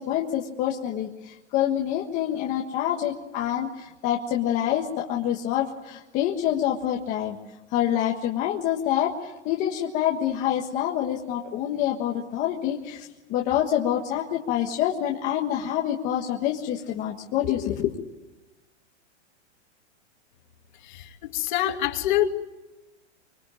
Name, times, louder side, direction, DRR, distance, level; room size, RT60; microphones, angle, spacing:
voice 1, 0.0-7.4 7.7-18.0, left 11 dB, 20° left, 1.5 m, -26 dB
voice 2, 20.8-22.3, left 13 dB, 40° left, 2.5 m, -25 dB
25.0 x 24.5 x 9.0 m
supercardioid pair, 175°, 35 cm